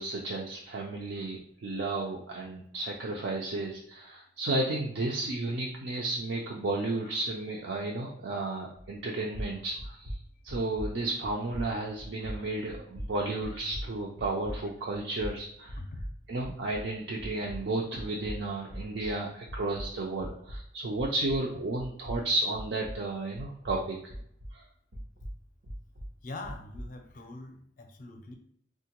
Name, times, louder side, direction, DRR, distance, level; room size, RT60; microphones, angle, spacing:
voice 1, 0.0-10.2 10.4-15.8 16.3-24.0 24.5-24.6, right 2 dB, 60° right, -1 dB, 0.4 m, -33 dB
sound 1, 8.7-9.1 9.3-16.9 17.2-21.5 21.8-24.6 24.9-27.0, equal, 90° right, 0.9 m, -41 dB
voice 2, 26.2-28.3, left 2 dB, 45° left, 5 dB, 0.5 m, -43 dB
3.5 x 2.1 x 2.9 m, 0.68 s
head